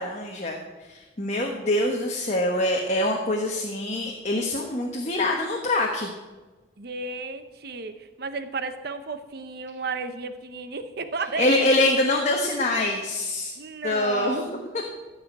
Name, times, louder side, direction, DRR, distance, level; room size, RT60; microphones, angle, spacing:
voice 1, 0.0-6.1 11.4-13.5 13.8-14.4, left 1 dB, 35° left, 1 dB, 1.2 m, -25 dB
voice 2, 6.8-11.6 13.6-14.7, right 4 dB, 55° right, 10 dB, 0.7 m, -33 dB
14.5 x 5.0 x 8.6 m, 1.2 s
head